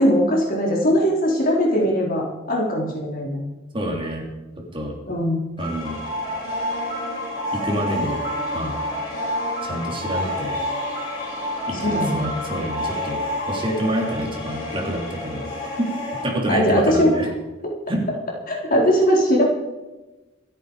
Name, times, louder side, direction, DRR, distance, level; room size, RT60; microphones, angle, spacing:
voice 1, 0.0-3.4 5.1-5.4 11.8-12.3 16.5-17.3 18.5-19.4, equal, 45° left, -2 dB, 4.3 m, -20 dB
voice 2, 3.7-4.2 4.7-4.9 5.6-6.0 7.5-8.2 8.5-8.8 9.6-10.6 11.7-13.2 13.5-15.5 15.8-15.9 16.2-17.3 17.9-18.0, equal, 25° right, 0 dB, 3.3 m, -27 dB
sound 1, 5.6-16.2, left 1 dB, 25° left, 7.6 m, -28 dB
27.0 x 9.1 x 5.0 m, 1.1 s
head